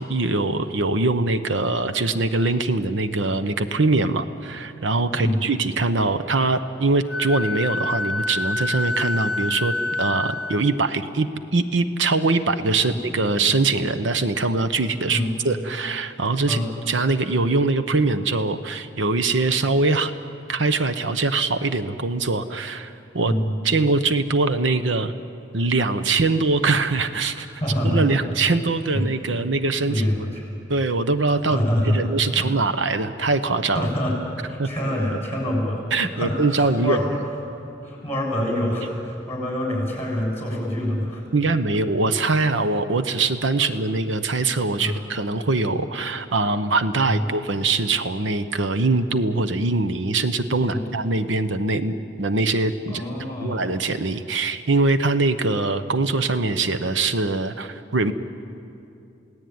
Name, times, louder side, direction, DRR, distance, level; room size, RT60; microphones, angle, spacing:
voice 1, 0.0-9.7 10.0-16.6 16.9-20.1 20.5-23.3 23.6-25.1 25.5-27.5 27.8-30.0 30.7-33.9 34.6-34.7 35.9-37.0 41.3-53.0 53.4-58.1, right 3 dB, 80° right, 10 dB, 1.0 m, -22 dB
Wind instrument woodwind instrument, 7.1-10.6, left 2 dB, 5° right, 0.9 m, -27 dB
voice 2, 23.2-23.6 27.6-28.1 28.9-29.1 29.9-30.4 31.5-32.0 32.4-32.5 33.7-37.1 37.8-41.2 44.8-45.0 47.1-47.3 50.6-50.8 52.9-53.6, equal, 10° left, -1 dB, 7.2 m, -25 dB
28.5 x 18.0 x 9.5 m, 2.7 s
head